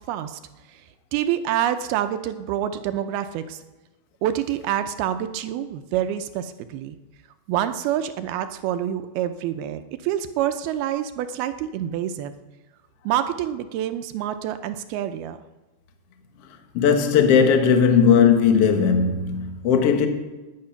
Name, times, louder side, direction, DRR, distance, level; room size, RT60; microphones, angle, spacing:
voice 1, 0.1-0.4 0.7-0.8 1.1-3.6 4.2-7.0 7.5-12.3 13.1-15.4, right 11 dB, 80° right, 2.4 m, -27 dB
voice 2, 16.7-20.1, left 7 dB, 70° left, 1.4 m, -17 dB
18.0 x 10.5 x 5.8 m
omnidirectional pair, 4.9 m